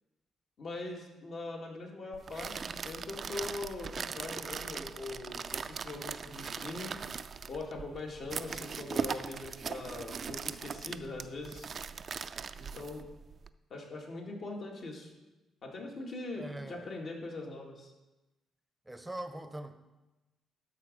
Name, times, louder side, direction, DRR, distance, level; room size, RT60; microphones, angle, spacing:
voice 1, 0.6-6.9 7.5-11.7 12.6-13.0 13.7-15.1 15.6-17.9, left 2 dB, 55° left, 0 dB, 2.0 m, -42 dB
sound 1, 2.1-13.5, right 6 dB, 45° right, 0.3 m, -40 dB
voice 2, 16.4-16.9 18.8-19.7, right 1 dB, 10° right, 9 dB, 0.7 m, -42 dB
12.5 x 4.2 x 5.2 m, 1.1 s
cardioid pair, 90°, 0 cm